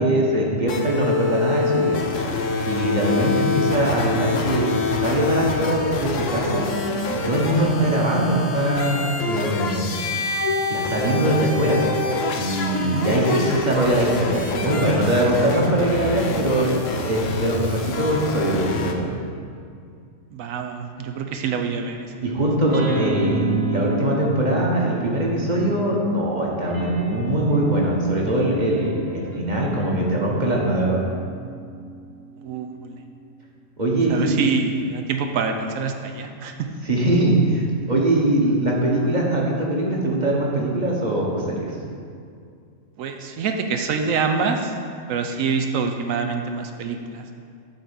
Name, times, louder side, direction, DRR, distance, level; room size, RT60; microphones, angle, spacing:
voice 1, 0.0-2.0 2.7-4.7 5.0-6.7 7.1-9.9 10.7-11.8 12.4-19.1 22.2-31.0 33.8-34.3 36.8-41.8, right 1 dB, 35° right, -2 dB, 1.3 m, -22 dB
sound 1, 0.7-18.9, left 4 dB, 70° left, 1.1 m, -26 dB
voice 2, 12.8-13.1 20.3-22.1 22.8-23.0 32.4-33.0 34.1-36.7 43.0-44.7 45.1-47.2, right 5 dB, 85° right, 5 dB, 1.0 m, -26 dB
sound 2, 22.7-26.1 26.6-33.4, right 2 dB, 20° right, 0.7 m, -32 dB
9.1 x 3.7 x 7.0 m, 2.3 s
omnidirectional pair, 1.4 m